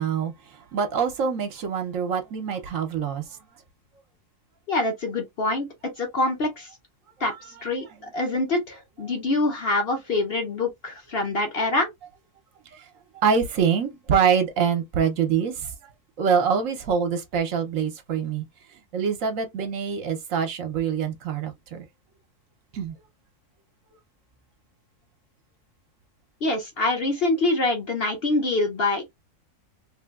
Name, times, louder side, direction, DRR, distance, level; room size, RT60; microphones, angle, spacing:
voice 1, 0.0-3.4 12.7-12.9 13.1-15.7 16.2-18.4 18.9-21.8 22.7-22.9, right 7 dB, 70° right, 1.1 m, -25 dB
voice 2, 4.7-5.7 6.0-6.7 7.2-7.3 7.6-11.9 26.4-29.1, left 2 dB, 50° left, 1.0 m, -25 dB
3.2 x 2.6 x 2.3 m
omnidirectional pair, 1.5 m